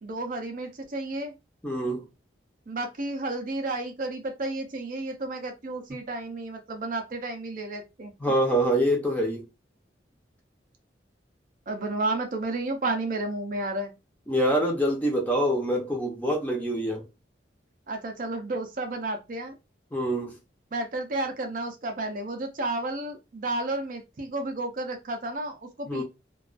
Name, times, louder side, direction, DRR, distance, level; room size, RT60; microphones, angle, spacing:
voice 1, 0.0-1.3 2.7-8.1 11.7-13.9 17.9-19.5 20.7-26.0, right 2 dB, 45° right, 0.4 m, -32 dB
voice 2, 1.6-2.0 8.2-9.4 14.3-17.0 19.9-20.4 25.9-26.0, equal, 10° left, 0.6 m, -25 dB
2.3 x 2.2 x 2.4 m
head